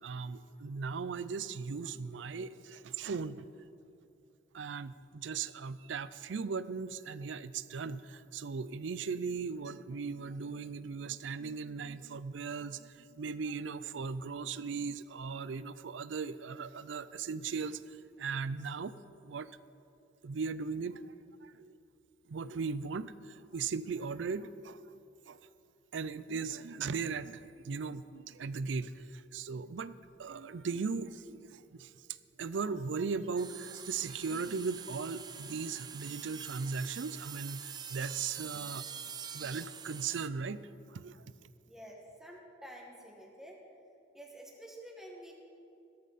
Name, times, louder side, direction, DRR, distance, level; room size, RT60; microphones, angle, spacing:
voice 1, 0.0-3.5 4.5-18.9 19.2-19.5 20.2-21.1 21.4-21.8 22.3-24.8 25.3-25.4 25.9-29.9 30.2-31.9 32.4-38.9 39.3-41.2, right 5 dB, 80° right, 16 dB, 0.5 m, -38 dB
sound 1, 33.4-40.3, right 7 dB, 20° right, 0.4 m, -45 dB
voice 2, 41.7-43.6 44.1-45.3, equal, 5° right, -1 dB, 1.8 m, -49 dB
15.5 x 13.5 x 4.2 m, 2.6 s
head